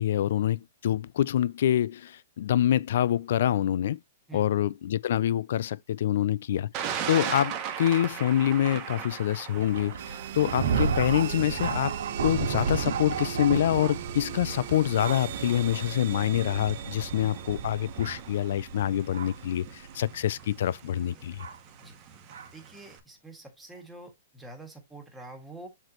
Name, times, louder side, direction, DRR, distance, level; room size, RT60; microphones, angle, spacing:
voice 1, 0.0-4.0 4.3-9.9 10.3-11.9 12.2-21.4, left 11 dB, 55° left, 0.4 m, -26 dB
Thunder, 6.7-23.0, right 8 dB, 25° right, 1.2 m, -41 dB
Thunder 2, 9.6-19.5 20.3-20.4 21.4-21.6 22.3-22.5, right 6 dB, 90° right, 2.3 m, -33 dB
sound 1, 10.0-20.2, right 13 dB, 45° right, 0.4 m, -40 dB
voice 2, 22.5-25.7, right 2 dB, 5° right, 1.7 m, -46 dB
7.8 x 4.5 x 3.0 m
hypercardioid pair, 175°, 0 cm